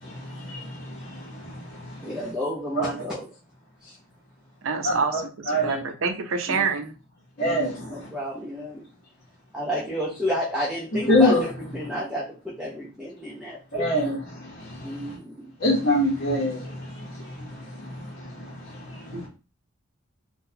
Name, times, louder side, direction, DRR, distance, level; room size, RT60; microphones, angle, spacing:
voice 1, 0.0-2.3 2.7-2.9 4.8-5.2 5.5-5.8 7.4-8.1 11.1-11.4 13.7-15.1 15.6-19.3, left 1 dB, 50° left, 0.9 m, -26 dB
voice 2, 2.0-3.3 3.8-4.0 6.5-6.6 7.4-8.8 9.5-11.5 11.7-13.9 14.8-15.5, equal, 5° right, 0.5 m, -31 dB
voice 3, 4.6-6.9 19.1-19.2, right 5 dB, 75° right, 0.5 m, -27 dB
3.7 x 2.2 x 2.7 m
head